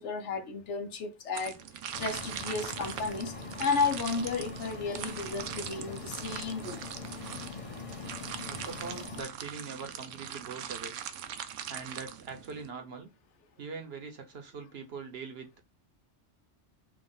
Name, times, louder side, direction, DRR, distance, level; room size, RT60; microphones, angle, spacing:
voice 1, 0.0-1.6 2.0-6.9, left 4 dB, 75° left, 1.1 m, -33 dB
sound 1, 1.3-12.7, right 9 dB, 85° right, 0.9 m, -41 dB
sound 2, 1.9-9.2, left 4 dB, 30° left, 0.8 m, -43 dB
voice 2, 8.5-10.9 11.7-13.1 13.6-15.6, right 5 dB, 60° right, 1.0 m, -42 dB
3.6 x 2.4 x 3.7 m
omnidirectional pair, 1.2 m